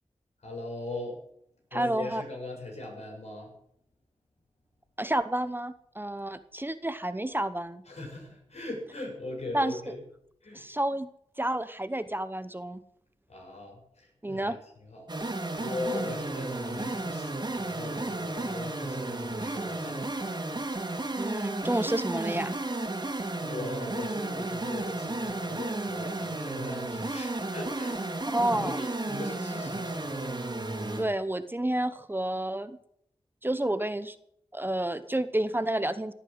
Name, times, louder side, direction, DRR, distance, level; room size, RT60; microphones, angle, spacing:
voice 1, 0.4-1.2 1.7-3.5 7.9-10.0 10.4-10.6 13.3-15.1 15.6-20.1 23.4-28.0 28.5-30.3, left 2 dB, 70° left, 0 dB, 7.5 m, -39 dB
voice 2, 1.7-2.2 5.0-7.8 9.5-9.7 10.5-11.1 11.4-12.8 14.2-14.6 15.9-16.1 21.2-22.6 28.3-28.8 31.0-32.8 33.4-34.2 34.5-36.1, right 1 dB, 20° right, 12 dB, 0.9 m, -30 dB
sound 1, 15.1-31.1, right 2 dB, 40° right, 2.9 m, -33 dB
17.5 x 9.1 x 7.9 m, 0.70 s
cardioid pair, 55°, 12 cm